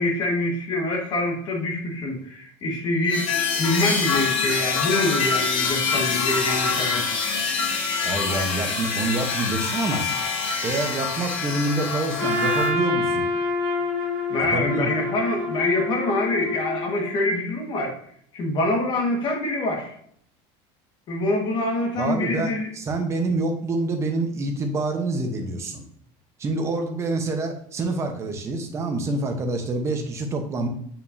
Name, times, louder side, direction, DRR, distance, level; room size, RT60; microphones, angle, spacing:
voice 1, 0.0-3.3 3.6-7.1 14.3-18.0 18.3-19.9 21.1-22.7, left 2 dB, 35° left, 1 dB, 1.6 m, -25 dB
sound 1, 3.1-12.7, left 5 dB, 80° left, 2.1 m, -25 dB
voice 2, 8.0-10.0 10.6-13.3 14.5-14.9 22.0-25.8 26.4-30.7, right 2 dB, 20° right, 4 dB, 0.9 m, -27 dB
Trumpet, 12.2-17.3, left 2 dB, 5° right, 2.4 m, -27 dB
6.9 x 5.6 x 2.7 m, 0.64 s
cardioid pair, 165°, 14 cm